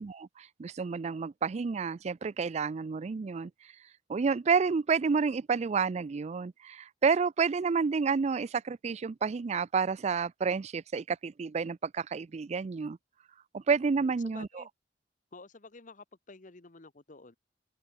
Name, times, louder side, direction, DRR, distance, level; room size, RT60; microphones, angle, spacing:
voice 1, 0.0-3.5 4.1-13.0 13.5-14.6, right 5 dB, 40° right, 0.4 m, -30 dB
voice 2, 14.0-14.7 15.3-17.4, left 3 dB, 45° left, 1.2 m, -51 dB
open air
head